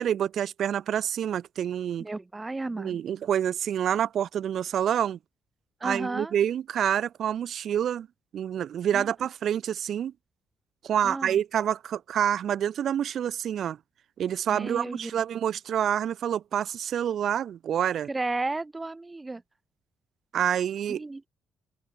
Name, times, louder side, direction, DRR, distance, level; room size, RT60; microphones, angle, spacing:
voice 1, 0.0-2.1 2.8-5.2 5.8-8.1 8.3-10.1 10.8-13.8 14.2-18.1 20.3-21.0, right 9 dB, 65° right, 1.0 m, -27 dB
voice 2, 2.0-3.0 5.8-6.3 8.9-9.1 11.0-11.4 14.5-15.1 18.1-19.4 20.9-21.2, right 2 dB, 20° right, 1.7 m, -33 dB
open air
cardioid pair, 90°, 0 cm